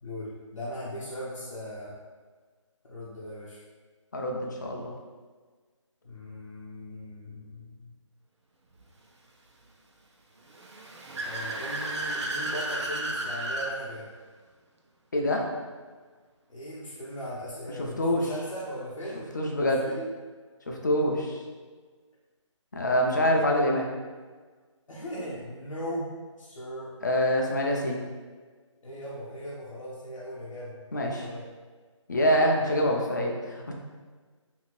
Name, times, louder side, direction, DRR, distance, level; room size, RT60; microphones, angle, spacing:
voice 1, 0.0-1.9 2.8-3.6 6.0-7.9 11.2-14.1 16.5-19.2 19.7-20.1 23.5-23.7 24.9-26.1 26.4-26.9 28.8-31.4, equal, 80° left, -7 dB, 0.7 m, -38 dB
voice 2, 4.1-4.9 15.1-15.4 18.0-18.3 19.3-19.9 20.7-21.4 22.7-23.9 27.0-28.0 30.9-31.3 32.1-33.7, equal, 35° left, 0 dB, 0.4 m, -25 dB
Car / Accelerating revving vroom, 10.5-13.7, right 1 dB, 60° right, 0.5 m, -33 dB
2.7 x 2.5 x 3.0 m, 1.4 s
figure-of-eight pair, 165°, 16 cm